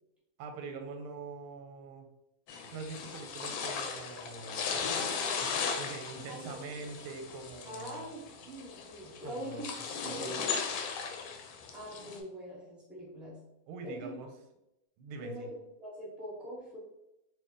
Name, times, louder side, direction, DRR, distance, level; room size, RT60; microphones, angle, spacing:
voice 1, 0.4-2.0 2.7-5.1 5.8-8.0 9.2-9.7 10.0-10.6 13.7-14.3 15.0-15.5, right 4 dB, 90° right, 5 dB, 1.4 m, -43 dB
sound 1, 2.5-12.2, left 6 dB, 75° left, 1.3 m, -37 dB
voice 2, 6.3-6.7 7.7-9.7 10.0-10.5 11.7-13.4 13.8-14.1 15.2-16.8, equal, ahead, -6 dB, 0.4 m, -43 dB
3.0 x 2.9 x 3.6 m, 0.89 s
omnidirectional pair, 2.3 m